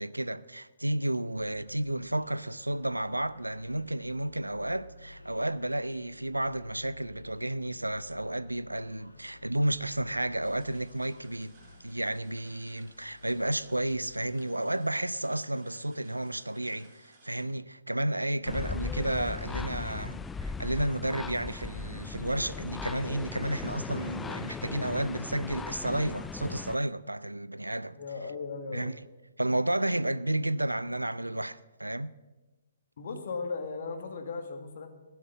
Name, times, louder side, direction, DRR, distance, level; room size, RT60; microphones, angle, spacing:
voice 1, 0.0-11.5 11.8-28.0 28.7-28.9 29.4-32.1, right 1 dB, 85° right, 0.5 m, -32 dB
sound 1, 1.3-14.2, left 2 dB, 85° left, 2.0 m, -54 dB
sound 2, 10.4-17.5, right 3 dB, 35° right, 4.2 m, -61 dB
sound 3, 18.4-26.8, left 4 dB, 10° left, 0.3 m, -38 dB
voice 2, 27.9-28.9 33.0-34.9, left 4 dB, 50° left, 1.8 m, -37 dB
15.5 x 6.7 x 7.2 m
figure-of-eight pair, 130°, 0 cm